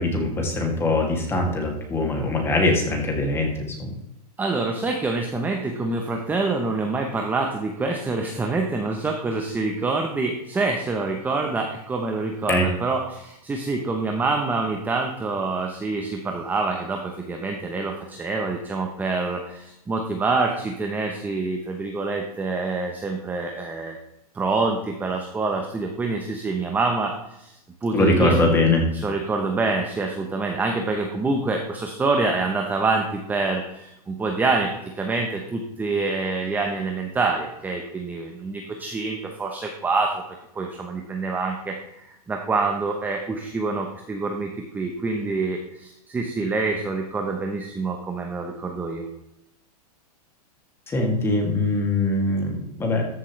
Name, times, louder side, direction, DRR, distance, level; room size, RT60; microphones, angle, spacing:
voice 1, 0.0-4.0 12.5-12.7 27.9-28.9 50.9-53.1, left 2 dB, 10° left, 1 dB, 2.4 m, -22 dB
voice 2, 4.4-24.0 24.3-27.1 27.4-27.5 27.8-28.3 29.0-40.2 40.5-49.0, right 3 dB, 10° right, 2 dB, 0.8 m, -26 dB
14.0 x 7.6 x 3.2 m, 0.84 s
hypercardioid pair, 150°, 20 cm